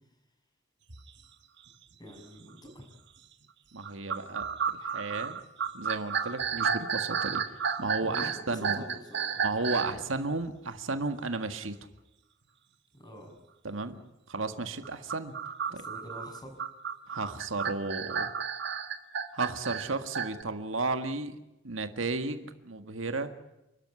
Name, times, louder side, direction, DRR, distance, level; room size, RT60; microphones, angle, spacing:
sound 1, 0.9-1.1 1.7-1.8 2.4-2.7 3.8-9.9 14.8-20.4, right 7 dB, 65° right, 1.7 m, -32 dB
voice 1, 2.0-2.9 8.0-10.0 12.9-13.3 15.7-16.6, equal, 20° left, 3 dB, 6.4 m, -46 dB
voice 2, 3.7-5.4 5.7-8.8 9.4-11.8 13.6-14.0 14.3-15.3 15.7-15.8 17.1-18.3 19.3-21.4 21.6-23.3, right 3 dB, 85° right, 9 dB, 1.7 m, -33 dB
29.0 x 12.5 x 9.7 m, 0.94 s
head